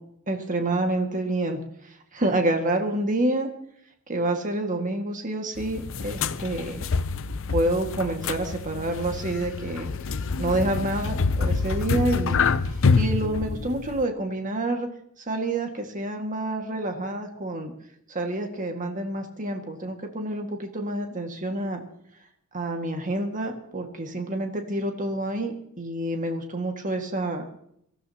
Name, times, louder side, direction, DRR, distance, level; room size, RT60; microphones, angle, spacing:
voice 1, 0.3-1.6 2.1-3.5 4.1-6.8 7.5-9.9 10.4-12.5 13.0-14.9 15.3-17.7 18.1-21.8 22.5-27.5, right 2 dB, 35° right, 3 dB, 1.9 m, -28 dB
sound 1, 5.6-14.0, left 4 dB, 65° left, 0.7 m, -26 dB
23.5 x 15.0 x 2.9 m, 0.71 s
head